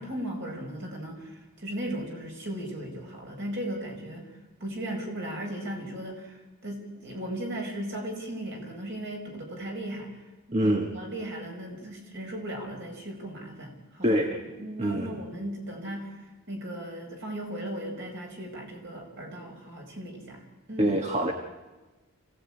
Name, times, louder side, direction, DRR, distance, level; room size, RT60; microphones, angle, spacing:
voice 1, 0.0-4.3 4.6-10.2 10.5-14.2 14.5-20.9, right 1 dB, 50° right, 1 dB, 5.4 m, -37 dB
voice 2, 10.5-10.9 14.0-14.4 14.8-15.2 20.8-21.3, right 1 dB, 30° right, 3 dB, 1.4 m, -25 dB
26.0 x 16.5 x 9.0 m, 1.2 s
head